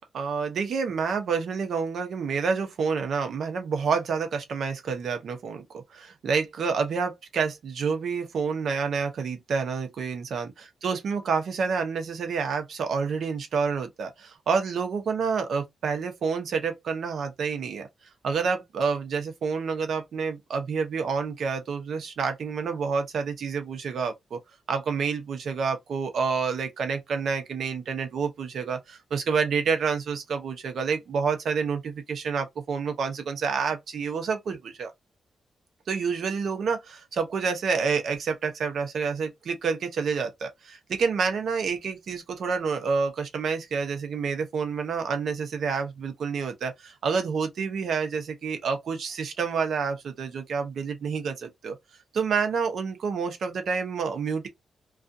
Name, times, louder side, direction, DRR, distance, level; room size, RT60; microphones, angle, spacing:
voice 1, 0.1-17.9 18.2-24.4 24.7-34.9 35.9-51.8 52.1-54.5, right 5 dB, 70° right, 0.7 m, -28 dB
2.4 x 2.4 x 2.6 m
cardioid pair, 100°, 0 cm